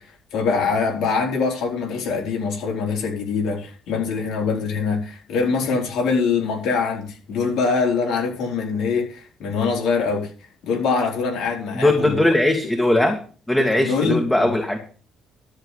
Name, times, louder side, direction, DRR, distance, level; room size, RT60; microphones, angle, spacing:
voice 1, 0.3-10.3 10.6-12.1 13.8-14.5, left 5 dB, 65° left, 4.5 m, -23 dB
voice 2, 11.7-13.2 13.5-14.8, left 1 dB, 10° left, 2.3 m, -19 dB
13.0 x 4.9 x 8.2 m
supercardioid pair, 60°, 0 cm